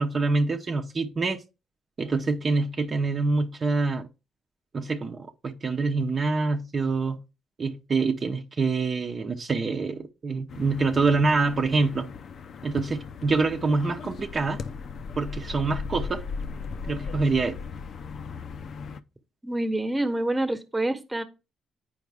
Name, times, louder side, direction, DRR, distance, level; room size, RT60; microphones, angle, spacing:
voice 1, 0.0-1.4 2.0-4.1 4.7-7.2 7.6-12.1 12.6-14.6 15.2-16.2 16.9-17.6, right 3 dB, 40° right, 0.8 m, -26 dB
sound 1, 10.5-19.0, left 5 dB, 60° left, 0.6 m, -37 dB
voice 2, 19.4-21.2, right 1 dB, 15° right, 1.2 m, -27 dB
9.2 x 5.1 x 3.5 m
cardioid pair, 100°, 0 cm